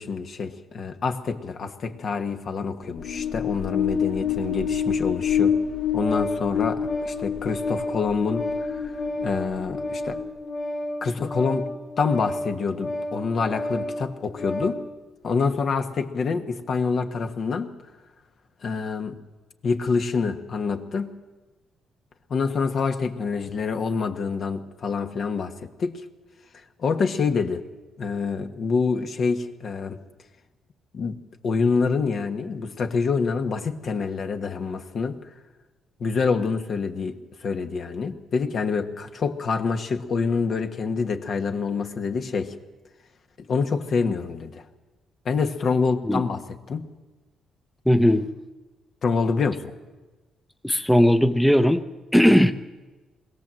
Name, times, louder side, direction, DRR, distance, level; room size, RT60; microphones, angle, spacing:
voice 1, 0.0-5.6 5.9-8.9 9.2-10.2 11.0-14.8 15.2-17.7 18.6-19.2 19.6-21.2 22.3-26.0 26.8-27.6 28.0-30.0 30.9-35.2 36.0-42.6 43.4-44.6 45.2-46.4 46.7-46.9 49.0-49.7, left 5 dB, 55° left, 6 dB, 1.4 m, -26 dB
sound 1, 2.8-10.5, left 7 dB, 80° left, 3.4 m, -27 dB
Organ, 5.4-14.9, left 1 dB, 30° left, 2.0 m, -32 dB
voice 2, 47.9-48.3 50.6-51.8 52.1-52.5, equal, 5° left, 8 dB, 0.8 m, -18 dB
21.5 x 16.5 x 7.7 m, 1.2 s
cardioid pair, 90°, 0 cm